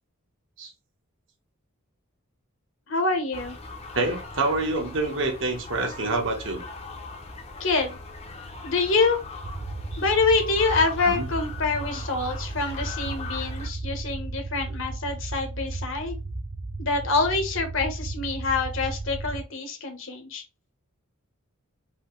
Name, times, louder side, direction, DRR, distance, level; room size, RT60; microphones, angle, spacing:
voice 1, 2.9-3.6 7.6-8.0 8.6-9.2 10.0-16.2 16.8-20.4, left 3 dB, 65° left, 5 dB, 1.2 m, -26 dB
sound 1, 3.3-13.7, left 3 dB, 30° left, 0.7 m, -40 dB
voice 2, 3.9-6.6 11.1-11.3, right 2 dB, 60° right, 3 dB, 1.3 m, -27 dB
sound 2, 9.4-19.4, right 2 dB, 30° right, 0.4 m, -34 dB
5.4 x 2.8 x 3.2 m, 0.29 s
head